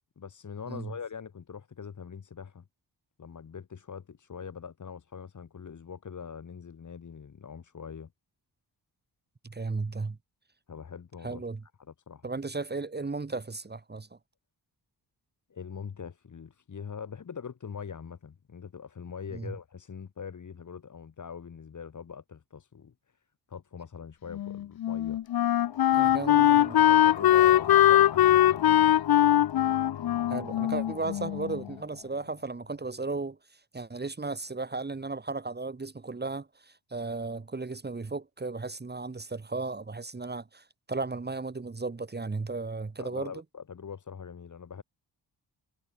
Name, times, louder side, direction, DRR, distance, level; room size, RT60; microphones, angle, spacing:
voice 1, 0.2-2.7 3.2-8.1 10.7-11.4 11.9-12.3 15.5-22.9 23.5-25.2 26.0-29.0 43.0-44.8, left 6 dB, 45° left, 1.8 m, -42 dB
voice 2, 9.4-10.2 11.2-11.6 12.2-14.2 19.3-19.5 25.9-26.8 30.3-43.3, right 3 dB, 25° right, 1.8 m, -35 dB
Wind instrument woodwind instrument, 24.3-31.6, left 12 dB, 60° left, 0.6 m, -22 dB
sound 1, 25.3-32.7, left 10 dB, 80° left, 1.8 m, -41 dB
wide cardioid pair, 130°, 42 cm